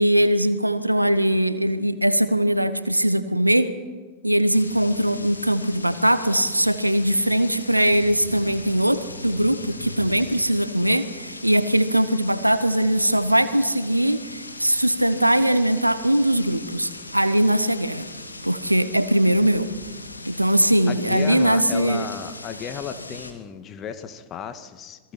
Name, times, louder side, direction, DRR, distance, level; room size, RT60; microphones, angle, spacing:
voice 1, 0.0-3.7 4.2-18.1 18.4-19.7 20.3-22.1, right 1 dB, 85° right, 13 dB, 1.2 m, -21 dB
sound 1, 4.5-23.3, left 2 dB, 85° left, 2.4 m, -39 dB
voice 2, 20.9-25.0, left 8 dB, 30° left, 8 dB, 1.9 m, -34 dB
27.5 x 22.0 x 4.4 m, 1.4 s
figure-of-eight pair, 90°, 0 cm